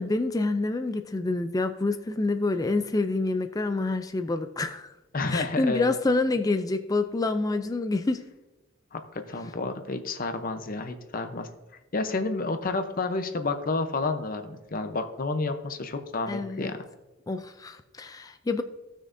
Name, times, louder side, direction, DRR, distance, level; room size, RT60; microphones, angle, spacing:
voice 1, 0.0-4.9 5.3-8.2 16.3-16.7 17.3-18.6, left 3 dB, 15° left, 7 dB, 0.3 m, -27 dB
voice 2, 5.1-5.9 8.9-11.5 11.9-16.8, left 3 dB, 40° left, 7 dB, 0.7 m, -30 dB
15.5 x 6.3 x 2.6 m, 1.0 s
head